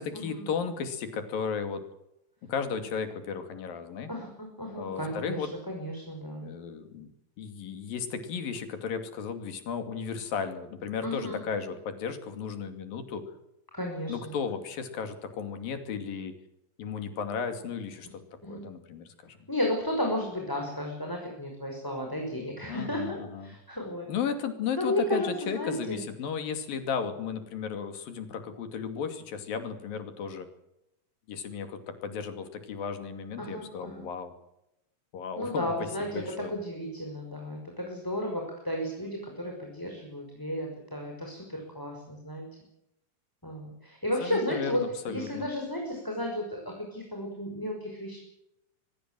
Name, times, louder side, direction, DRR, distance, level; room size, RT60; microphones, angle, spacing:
voice 1, 0.0-1.8 2.4-4.1 4.8-5.5 6.4-7.1 7.4-13.3 14.1-16.4 16.8-18.2 18.5-19.4 22.7-23.6 24.1-30.5 31.3-34.3 35.1-35.7 36.0-36.5 44.2-45.5, left 6 dB, 85° left, 8 dB, 4.4 m, -34 dB
voice 2, 4.1-6.5 11.0-11.4 13.7-14.4 18.4-18.7 19.5-24.1 24.8-26.0 33.4-34.0 35.4-42.5 43.4-48.2, left 1 dB, 5° left, 2 dB, 5.5 m, -33 dB
23.5 x 20.5 x 7.7 m, 0.84 s
omnidirectional pair, 3.9 m